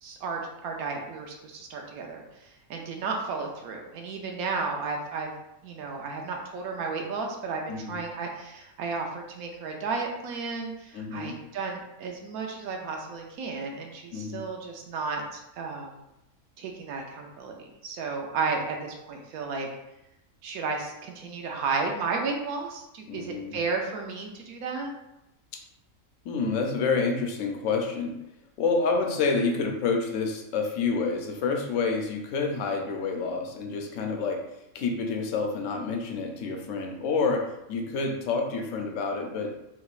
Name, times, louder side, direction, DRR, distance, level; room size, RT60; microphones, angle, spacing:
voice 1, 0.0-5.3 5.6-16.0 16.6-19.7 20.4-24.9, right 4 dB, 85° right, 2 dB, 1.1 m, -33 dB
voice 2, 7.7-8.0 10.9-11.4 14.1-14.4 23.1-23.6 26.2-28.2 28.6-34.4 34.7-39.5, left 4 dB, 65° left, 2 dB, 0.9 m, -28 dB
3.5 x 3.0 x 2.4 m, 0.88 s
omnidirectional pair, 1.5 m